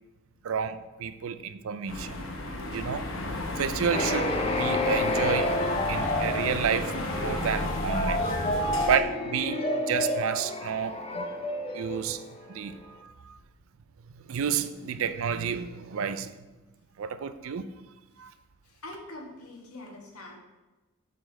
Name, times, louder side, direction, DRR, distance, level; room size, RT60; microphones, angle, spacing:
voice 1, 0.4-2.3 2.7-3.1 3.6-5.6 5.9-8.2 8.8-11.3 11.7-12.2 12.5-13.4 14.3-16.3 17.0-17.7 18.2-18.3, right 7 dB, 65° right, 0.4 m, -30 dB
sound 1, 1.9-9.0, left 1 dB, 60° left, 0.9 m, -33 dB
sound 2, 3.9-12.6, left 1 dB, 25° left, 0.5 m, -30 dB
voice 2, 18.6-20.4, left 1 dB, 85° left, 1.4 m, -44 dB
7.1 x 4.2 x 5.3 m
head